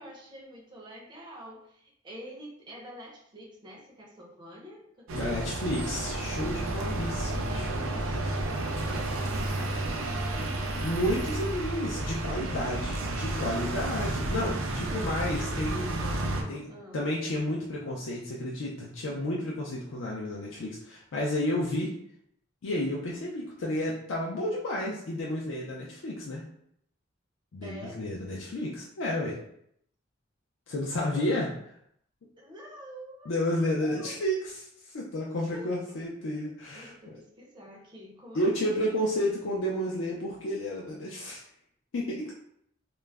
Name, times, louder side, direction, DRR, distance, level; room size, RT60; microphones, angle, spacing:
voice 1, 0.0-5.9 6.9-7.1 7.6-10.9 12.4-13.8 14.7-17.0 27.6-28.0 30.9-31.3 32.4-33.3 33.8-34.2 35.2-36.1 36.7-39.2, equal, 20° right, -2 dB, 0.5 m, -48 dB
voice 2, 5.1-8.3 10.8-16.0 16.5-21.9 22.6-26.4 27.5-29.4 30.7-31.5 33.3-37.2 38.3-41.4 41.9-42.3, left 1 dB, 65° left, -3 dB, 0.4 m, -31 dB
sound 1, 5.1-16.4, right 2 dB, 75° right, 0.4 m, -31 dB
2.3 x 2.0 x 3.3 m, 0.71 s
head